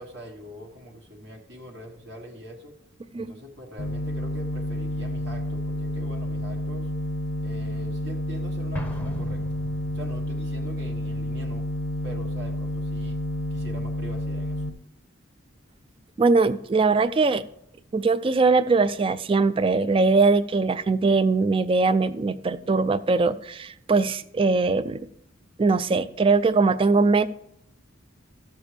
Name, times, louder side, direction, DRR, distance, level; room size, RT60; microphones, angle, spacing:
voice 1, 0.0-2.7 3.1-6.9 7.4-9.4 9.9-11.7 12.0-13.2 13.5-14.6, equal, 60° right, 0 dB, 1.3 m, -43 dB
sound 1, 3.8-14.7, left 1 dB, 70° left, 0.7 m, -30 dB
Explosion, 8.7-10.3, left 1 dB, 10° left, 0.7 m, -37 dB
voice 2, 16.2-17.4 17.9-25.0 25.6-27.3, right 3 dB, 25° right, 15 dB, 0.3 m, -21 dB
13.5 x 6.9 x 3.3 m, 0.72 s
head